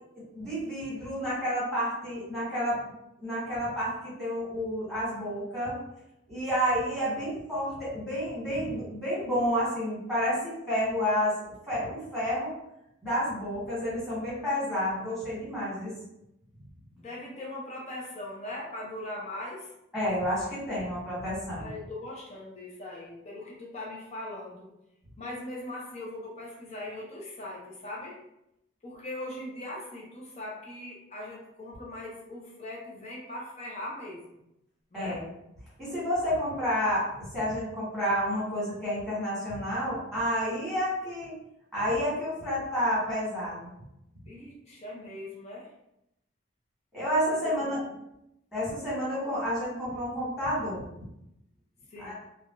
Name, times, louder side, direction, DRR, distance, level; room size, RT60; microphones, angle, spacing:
voice 1, 0.3-2.8 3.2-5.8 6.3-12.5 13.0-15.9 19.9-21.7 34.9-35.3 35.8-41.3 41.7-43.7 46.9-47.8 48.5-50.8 52.0-52.1, equal, ahead, -10 dB, 1.4 m, -30 dB
voice 2, 17.0-19.7 21.6-24.7 25.2-28.2 28.8-34.4 34.9-35.2 44.3-45.7 47.3-48.0 51.9-52.1, left 1 dB, 35° left, -3 dB, 0.5 m, -40 dB
3.3 x 2.2 x 2.5 m, 0.84 s
head